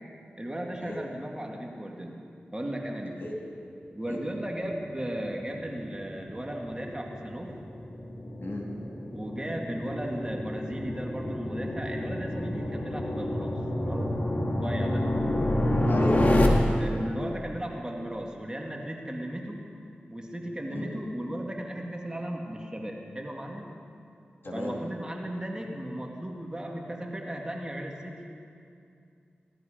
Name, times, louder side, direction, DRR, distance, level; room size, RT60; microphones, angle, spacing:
voice 1, 0.4-2.2 2.5-3.2 3.9-7.6 9.1-15.1 16.8-19.6 20.1-23.7 24.5-28.2, right 1 dB, 20° right, 0 dB, 2.1 m, -36 dB
sound 1, 5.3-16.5, left 1 dB, 40° left, 2.1 m, -29 dB
voice 2, 15.8-16.5 20.7-20.9 24.4-24.7, left 1 dB, 65° left, -2 dB, 2.9 m, -33 dB
18.0 x 12.0 x 5.1 m, 2.5 s
cardioid pair, 45°, 4 cm